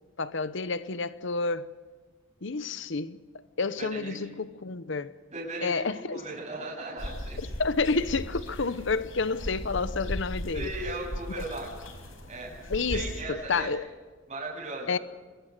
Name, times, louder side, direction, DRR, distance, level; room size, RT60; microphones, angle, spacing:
voice 1, 0.2-1.7 2.4-3.2 3.6-5.2 5.6-6.3 7.6-10.7 11.4-11.5 12.7-13.9 14.9-15.0, left 4 dB, 65° left, 0.9 m, -29 dB
voice 2, 3.8-4.1 5.3-5.8 6.1-7.4 10.5-11.7 12.3-12.5 12.9-13.7 14.3-14.9, right 2 dB, 35° right, 7.8 m, -37 dB
sound 1, 7.0-13.2, left 1 dB, 85° left, 4.6 m, -37 dB
25.0 x 22.5 x 6.7 m
head